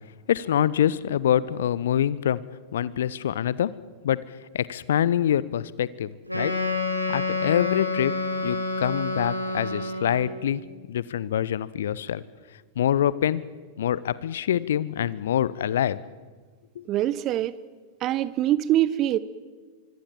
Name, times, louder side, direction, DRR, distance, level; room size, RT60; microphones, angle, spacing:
voice 1, 0.3-2.4 2.7-3.7 4.0-4.2 4.5-6.5 7.1-8.2 8.4-10.6 10.9-12.2 12.8-13.5 13.8-16.0 16.8-16.9, left 10 dB, 60° left, 19 dB, 0.8 m, -25 dB
Wind instrument woodwind instrument, 6.3-10.4, left 3 dB, 90° left, 4.4 m, -28 dB
voice 2, 16.9-17.5 18.0-19.2, right 13 dB, 35° right, 18 dB, 1.1 m, -23 dB
25.0 x 24.5 x 7.5 m, 1.5 s
figure-of-eight pair, 90°, 0 cm